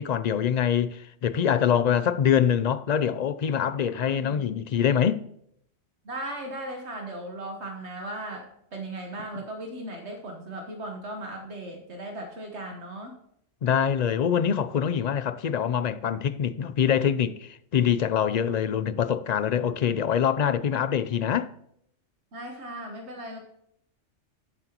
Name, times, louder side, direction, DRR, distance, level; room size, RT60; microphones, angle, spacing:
voice 1, 0.0-5.2 13.6-21.5, left 8 dB, 60° left, 0.4 m, -24 dB
voice 2, 3.9-4.4 6.0-13.1 22.3-23.4, right 1 dB, 75° right, 1.5 m, -37 dB
14.0 x 7.8 x 3.0 m
omnidirectional pair, 1.2 m